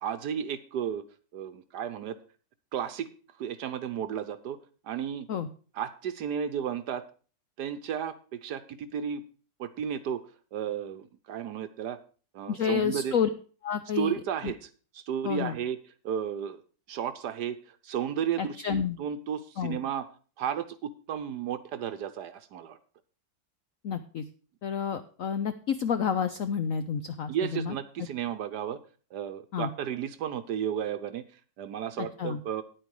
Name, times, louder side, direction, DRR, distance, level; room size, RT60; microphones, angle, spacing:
voice 1, 0.0-1.0 1.3-2.2 2.7-3.1 3.4-4.6 4.8-5.3 5.7-7.0 7.6-9.2 9.6-10.2 10.5-12.0 12.3-13.2 13.9-14.7 14.9-15.8 16.0-16.6 16.9-20.1 20.4-22.8 27.3-28.8 29.1-31.3 31.6-32.6, right 9 dB, 65° right, 11 dB, 1.2 m, -33 dB
voice 2, 12.5-13.3 13.6-14.1 14.4-14.5 15.2-15.6 18.4-19.0 19.6-19.8 23.8-24.2 24.6-27.7 29.5-29.7 32.0-32.4, left 7 dB, 70° left, 10 dB, 0.7 m, -30 dB
9.9 x 9.0 x 4.7 m, 0.38 s
omnidirectional pair, 2.1 m